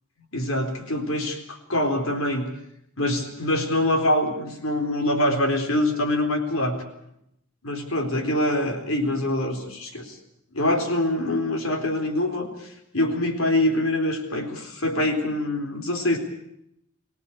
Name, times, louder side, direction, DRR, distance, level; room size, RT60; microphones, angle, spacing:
voice 1, 0.3-2.5 3.0-6.8 7.6-10.2 10.5-16.2, left 1 dB, 80° left, 5 dB, 4.1 m, -24 dB
24.5 x 17.5 x 8.7 m, 0.77 s
head